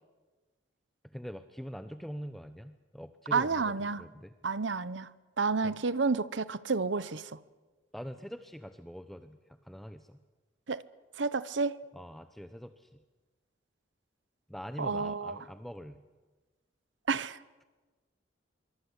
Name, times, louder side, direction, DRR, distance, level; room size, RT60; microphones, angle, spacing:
voice 1, 1.0-4.3 5.6-5.7 7.9-10.2 11.9-13.0 14.5-16.0, equal, ahead, 0.8 m, -44 dB
voice 2, 3.3-4.0 4.4-5.1 5.4-7.4 10.7-10.8 11.2-11.8 14.8-15.4 17.1-17.4, right 4 dB, 75° right, 0.9 m, -30 dB
26.0 x 24.0 x 8.3 m
head